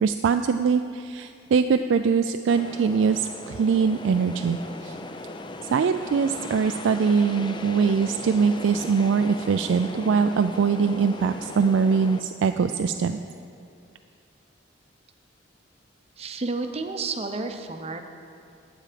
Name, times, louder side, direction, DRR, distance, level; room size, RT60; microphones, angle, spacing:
voice 1, 0.0-5.0 5.7-13.2, right 5 dB, 70° right, 8 dB, 0.3 m, -22 dB
sound 1, 2.5-12.2, left 2 dB, 25° left, 0.4 m, -38 dB
voice 2, 16.2-18.0, right 3 dB, 30° right, 6 dB, 0.7 m, -31 dB
12.0 x 8.7 x 5.0 m, 2.5 s
head